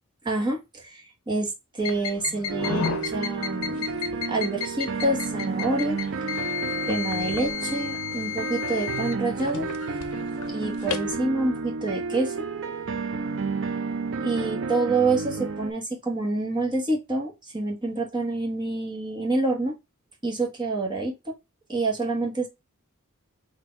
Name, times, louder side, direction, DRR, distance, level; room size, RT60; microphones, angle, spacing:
voice 1, 0.2-3.9 4.3-6.0 6.9-9.7 10.5-12.3 14.2-19.7 20.2-21.3 21.7-22.5, right 2 dB, 20° right, -1 dB, 1.3 m, -27 dB
sound 1, 1.8-11.1, left 7 dB, 75° left, 0.7 m, -33 dB
sound 2, 2.5-15.7, right 4 dB, 60° right, 0.5 m, -31 dB
4.3 x 2.7 x 4.4 m, 0.23 s
head